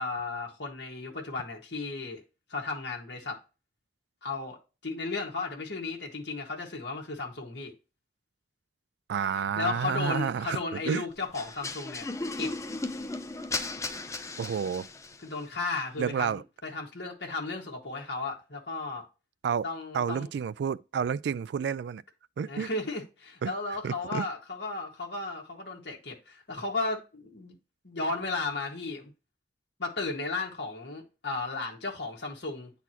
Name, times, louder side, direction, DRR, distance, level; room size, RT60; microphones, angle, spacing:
voice 1, 0.0-2.2 2.5-3.4 4.2-4.6 4.8-7.7 9.3-12.1 12.4-12.5 15.2-19.0 19.6-20.3 22.5-27.6 27.8-29.1 29.8-32.7, left 3 dB, 70° left, 1.6 m, -34 dB
voice 2, 9.1-11.0 14.4-14.9 16.0-16.4 19.4-19.6 19.9-22.0 22.4-22.7 23.4-23.5 23.8-24.2, right 7 dB, 70° right, 0.3 m, -30 dB
sound 1, 11.3-15.3, left 3 dB, 15° left, 0.5 m, -36 dB
9.3 x 4.1 x 2.9 m
head